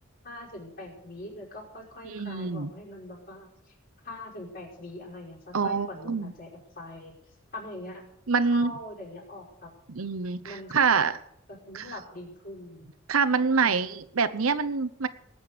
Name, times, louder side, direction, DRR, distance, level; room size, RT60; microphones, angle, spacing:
voice 1, 0.2-3.7 4.0-6.5 6.7-7.1 7.5-8.1 8.5-9.7 10.4-10.9 11.5-12.9 13.6-13.7, left 1 dB, 45° left, -2 dB, 5.4 m, -42 dB
voice 2, 2.0-2.7 5.5-6.3 8.3-8.7 9.9-11.2 11.7-11.9 13.1-15.1, right 5 dB, 85° right, 11 dB, 0.9 m, -26 dB
19.0 x 8.0 x 6.8 m, 0.73 s
head